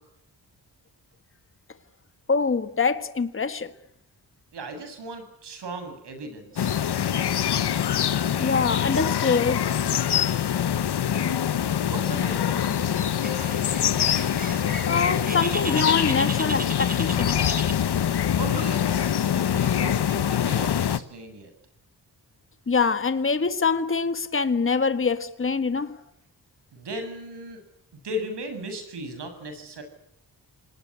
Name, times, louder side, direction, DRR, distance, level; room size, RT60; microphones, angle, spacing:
voice 1, 2.3-3.7 8.4-9.7 14.9-17.4 22.7-26.0, left 5 dB, 30° left, 1.6 m, -24 dB
voice 2, 4.5-6.9 11.1-13.0 18.3-21.5 26.7-27.6 28.0-29.8, right 1 dB, 80° right, 7.4 m, -37 dB
sound 1, 6.6-21.0, left 9 dB, 75° left, 1.2 m, -24 dB
Bird, 13.2-18.3, right 2 dB, 20° right, 3.4 m, -36 dB
28.0 x 19.5 x 8.6 m
wide cardioid pair, 120°, 40 cm